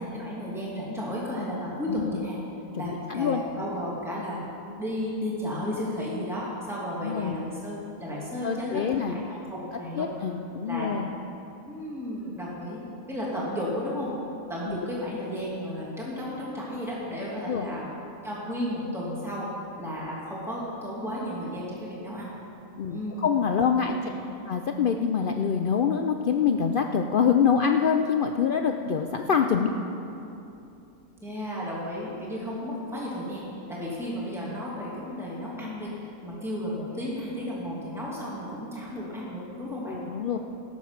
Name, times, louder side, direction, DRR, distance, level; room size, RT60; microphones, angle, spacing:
voice 1, 0.0-2.4 2.8-4.4 4.8-8.8 9.1-9.2 9.5-10.1 10.6-10.9 11.7-14.1 14.5-17.9 18.2-22.3 22.8-23.3 23.8-24.1 29.4-29.7 31.2-40.0, equal, ahead, -6 dB, 2.4 m, -33 dB
voice 2, 2.8-3.4 7.0-7.4 8.4-9.2 10.0-11.1 14.7-14.8 17.5-17.7 22.8-24.0 24.5-29.7 39.9-40.4, left 7 dB, 85° left, 5 dB, 0.4 m, -25 dB
17.5 x 7.3 x 5.8 m, 2.8 s
omnidirectional pair, 1.5 m